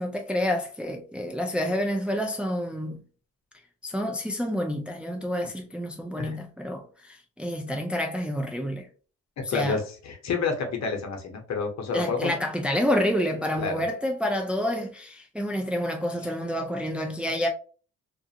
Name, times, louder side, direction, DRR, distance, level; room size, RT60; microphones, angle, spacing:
voice 1, 0.0-3.0 3.8-8.9 9.5-9.8 11.9-17.5, equal, 5° right, 0.4 m, -28 dB
voice 2, 9.5-12.3 13.6-13.8, left 4 dB, 60° left, 0.9 m, -29 dB
2.4 x 2.4 x 2.7 m
cardioid pair, 90°, 30 cm